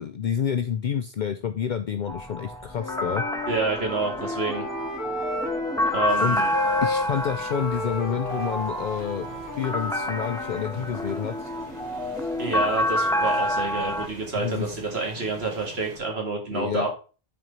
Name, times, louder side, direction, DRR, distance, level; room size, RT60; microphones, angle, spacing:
voice 1, 0.0-3.2 6.2-6.4 6.8-9.3 9.6-11.5 14.3-14.8 16.5-16.8, left 8 dB, 60° left, 8 dB, 0.6 m, -28 dB
sound 1, 2.1-14.1, left 1 dB, 5° left, 0.6 m, -29 dB
Wind instrument woodwind instrument, 2.7-6.2 6.5-10.7, left 2 dB, 20° left, 1.5 m, -33 dB
voice 2, 3.5-4.6 5.9-6.5 12.4-16.9, right 3 dB, 85° right, 1 dB, 2.3 m, -28 dB
sound 2, 6.1-16.0, right 2 dB, 40° right, 1.2 m, -45 dB
6.2 x 4.3 x 5.3 m, 0.35 s
omnidirectional pair, 1.0 m